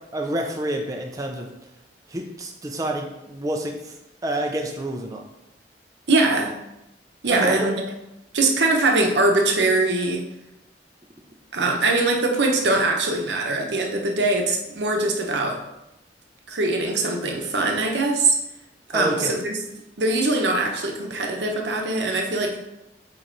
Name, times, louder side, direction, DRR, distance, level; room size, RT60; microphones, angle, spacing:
voice 1, 0.1-1.5 2.1-3.9 4.2-5.2 7.3-7.8 18.9-19.3, right 1 dB, 20° right, 2 dB, 0.6 m, -28 dB
voice 2, 6.1-6.6 7.2-7.8 8.3-10.2 11.5-15.7 16.5-18.4 18.9-19.6 20.0-22.6, right 2 dB, 75° right, 2 dB, 0.9 m, -22 dB
7.8 x 3.0 x 3.9 m, 0.90 s
head